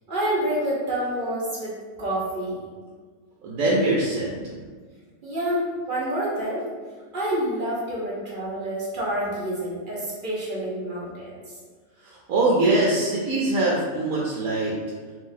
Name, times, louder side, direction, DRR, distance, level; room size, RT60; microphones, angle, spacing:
voice 1, 0.1-2.7 5.2-6.7 7.1-11.5, right 1 dB, 40° right, -7 dB, 0.8 m, -28 dB
voice 2, 3.4-4.6 12.0-14.7, right 2 dB, 70° right, -6 dB, 1.0 m, -23 dB
3.7 x 2.8 x 2.6 m, 1.5 s
omnidirectional pair, 1.6 m